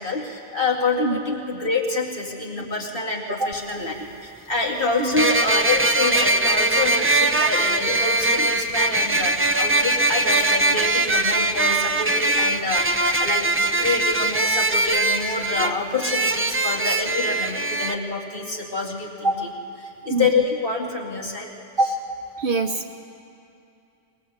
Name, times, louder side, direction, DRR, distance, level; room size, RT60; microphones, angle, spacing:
voice 1, 0.0-3.9 4.2-19.3 20.0-21.5, left 3 dB, 50° left, -2 dB, 2.5 m, -27 dB
sound 1, 3.5-3.6 5.2-17.9, right 2 dB, 20° right, 0.4 m, -21 dB
voice 2, 22.4-22.9, right 2 dB, 50° right, 5 dB, 1.0 m, -23 dB
20.5 x 20.0 x 8.1 m, 2.7 s
omnidirectional pair, 1.2 m